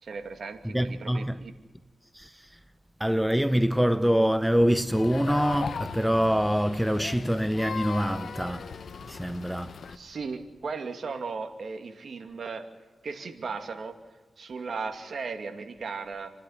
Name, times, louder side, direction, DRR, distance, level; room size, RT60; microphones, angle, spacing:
voice 1, 0.0-1.5 9.9-12.6 13.0-14.0 14.4-16.3, right 4 dB, 60° right, 2.4 m, -36 dB
voice 2, 0.7-1.4 2.1-2.3 3.0-8.7 9.1-9.8, equal, 5° right, 0.7 m, -25 dB
sound 1, 4.9-10.0, left 6 dB, 65° left, 0.8 m, -38 dB
28.5 x 11.5 x 9.9 m
cardioid pair, 80°, 0 cm